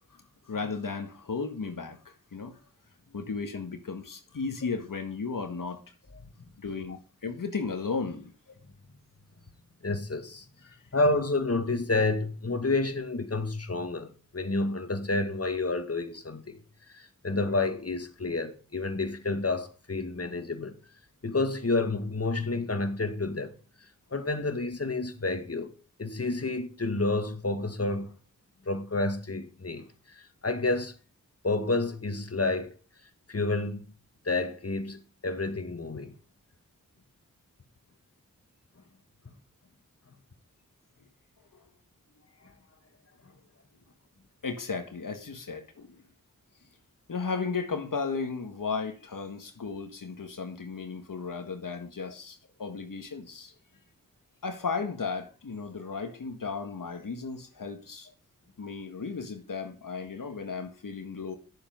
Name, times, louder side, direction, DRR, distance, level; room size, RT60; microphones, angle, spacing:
voice 1, 0.5-2.6 3.1-5.8 6.6-8.3 10.7-10.8 44.4-46.0 47.1-53.5 54.4-58.1 58.6-61.3, left 4 dB, 70° left, 1.7 m, -35 dB
voice 2, 9.8-10.5 10.9-16.6 16.9-20.7 21.2-23.5 24.1-25.7 26.0-28.2 28.7-30.9 31.4-32.7 33.3-33.8 34.2-36.2 58.6-58.7, left 2 dB, 45° left, 2.0 m, -29 dB
10.5 x 7.5 x 5.3 m
cardioid pair, 45°, 34 cm